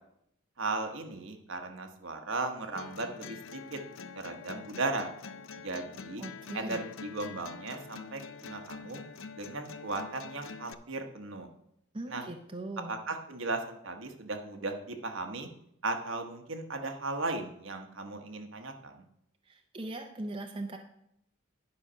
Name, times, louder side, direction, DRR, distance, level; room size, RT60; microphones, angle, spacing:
voice 1, 0.6-3.8 4.1-5.1 5.6-6.2 6.5-9.0 9.4-11.5 12.1-12.3 12.9-15.5 15.8-19.0, right 3 dB, 70° right, 5 dB, 1.1 m, -36 dB
sound 1, 2.7-10.7, left 5 dB, 70° left, 0.5 m, -45 dB
voice 2, 6.2-6.8 11.9-12.9 19.5-20.8, right 2 dB, 25° right, 3 dB, 0.7 m, -40 dB
10.5 x 5.1 x 5.5 m, 0.75 s
head